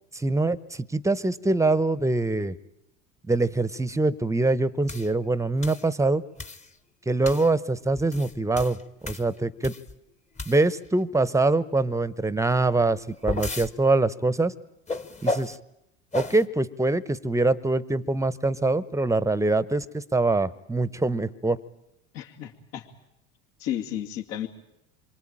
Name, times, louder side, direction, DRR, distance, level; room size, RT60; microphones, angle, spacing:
voice 1, 0.1-2.5 3.3-6.2 7.1-8.8 9.0-9.7 10.5-14.5 15.2-15.6 16.1-21.6, right 2 dB, 5° right, 19 dB, 1.0 m, -24 dB
sound 1, 4.9-5.1 5.6-5.9 6.4-6.7 7.2-7.5 8.0-9.9 10.3-10.9 12.8-13.7 14.9-15.6 16.1-16.4, left 2 dB, 15° left, 1.3 m, -33 dB
voice 2, 22.1-22.9 23.6-24.5, left 11 dB, 65° left, 3 dB, 2.7 m, -32 dB
27.0 x 24.0 x 8.9 m, 0.82 s
hypercardioid pair, 85°, 41 cm